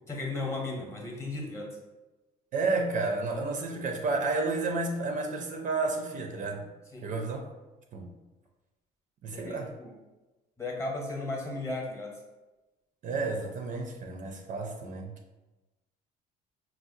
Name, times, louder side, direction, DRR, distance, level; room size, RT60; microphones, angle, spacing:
voice 1, 0.1-1.7 6.9-7.1 9.3-9.9 10.6-12.1, left 2 dB, 15° left, 0 dB, 0.8 m, -35 dB
voice 2, 2.5-6.7 7.0-7.5 7.9-8.1 9.2-9.7 13.0-15.1, right 3 dB, 50° right, 3 dB, 0.4 m, -31 dB
4.4 x 2.0 x 2.6 m, 1.1 s
cardioid pair, 110°, 17 cm